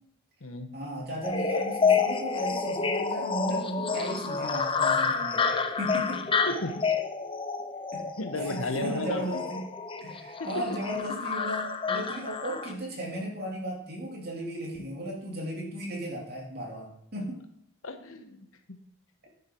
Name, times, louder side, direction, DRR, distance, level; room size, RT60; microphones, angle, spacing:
voice 1, 0.7-6.2 7.9-8.1 8.4-9.6 10.0-17.4 19.2-19.3, right 1 dB, 45° right, -2 dB, 2.7 m, -35 dB
sound 1, 1.2-12.7, left 5 dB, 25° left, 0.6 m, -29 dB
voice 2, 6.4-6.9 7.1-7.2 8.2-9.4 10.4-10.7 17.8-18.5, left 2 dB, 75° left, 7 dB, 1.1 m, -34 dB
10.0 x 6.8 x 4.5 m, 0.71 s
head